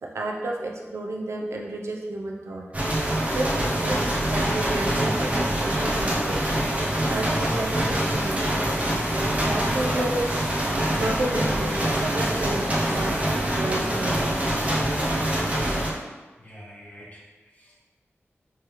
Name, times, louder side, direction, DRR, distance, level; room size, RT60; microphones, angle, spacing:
voice 1, 0.0-2.7 3.3-6.5 7.0-14.2, right 1 dB, 75° right, 0 dB, 0.5 m, -31 dB
sound 1, 2.7-15.9, right 1 dB, 30° right, 0.7 m, -25 dB
voice 2, 16.4-17.7, equal, 30° left, -5 dB, 1.1 m, -47 dB
3.3 x 3.1 x 3.0 m, 1.2 s
wide cardioid pair, 65°, 5 cm